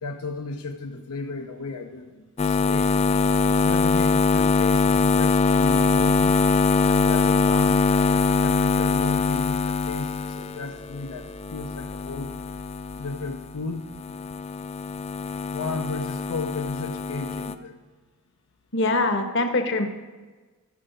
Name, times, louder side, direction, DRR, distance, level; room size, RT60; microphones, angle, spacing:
voice 1, 0.0-3.0 3.6-6.3 6.9-12.3 13.0-13.9 15.5-17.8, left 3 dB, 80° left, 4 dB, 0.6 m, -34 dB
sound 1, 2.4-13.6 13.9-17.5, left 4 dB, 30° left, 0.3 m, -23 dB
voice 2, 18.7-19.9, left 2 dB, 55° left, 6 dB, 1.0 m, -23 dB
13.0 x 5.6 x 5.1 m, 1.3 s
head